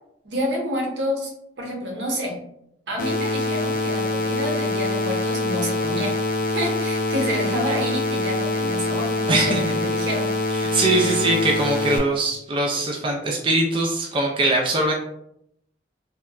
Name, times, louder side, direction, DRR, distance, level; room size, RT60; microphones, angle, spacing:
voice 1, 0.2-1.3 1.6-2.4 2.9-6.1 6.5-9.5 9.8-10.3, equal, 85° right, -1 dB, 0.8 m, -28 dB
sound 1, 3.0-12.0, left 2 dB, 55° left, 0.4 m, -24 dB
voice 2, 9.3-9.7 10.7-14.9, right 2 dB, 30° right, -1 dB, 0.4 m, -22 dB
2.9 x 2.2 x 2.3 m, 0.75 s
head